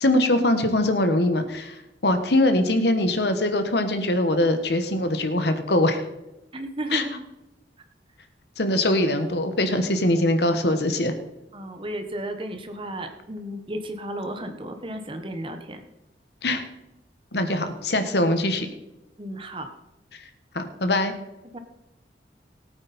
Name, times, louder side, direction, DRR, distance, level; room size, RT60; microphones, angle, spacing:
voice 1, 0.0-6.0 6.9-7.0 8.6-11.1 16.4-16.6 17.3-18.7 20.1-20.2 20.5-21.1, left 1 dB, 65° left, 8 dB, 1.4 m, -22 dB
voice 2, 6.5-7.2 11.5-15.8 19.2-19.7 21.5-21.6, right 1 dB, 30° right, 6 dB, 1.3 m, -33 dB
18.5 x 8.8 x 4.3 m, 0.97 s
head